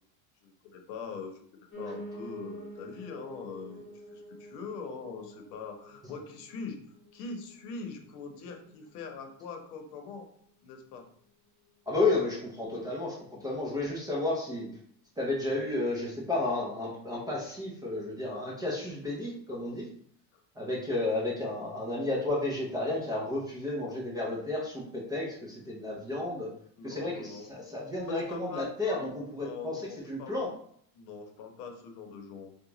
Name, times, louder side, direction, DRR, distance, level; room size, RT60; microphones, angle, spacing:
voice 1, 0.4-6.8 7.1-10.3 10.6-11.1 20.3-20.4 26.8-27.5 28.0-28.7 29.4-30.3 30.9-32.5, left 5 dB, 75° left, 4 dB, 0.9 m, -42 dB
Piano, 1.7-10.8 11.2-12.4 12.7-12.8 13.0-13.1 13.3-13.4 14.0-14.1, equal, 25° left, 0.9 m, -48 dB
voice 2, 11.9-14.7 15.2-19.9 20.6-26.5 26.8-30.5, left 2 dB, 10° right, -5 dB, 0.4 m, -32 dB
2.9 x 2.3 x 3.8 m, 0.63 s
supercardioid pair, 130°, 49 cm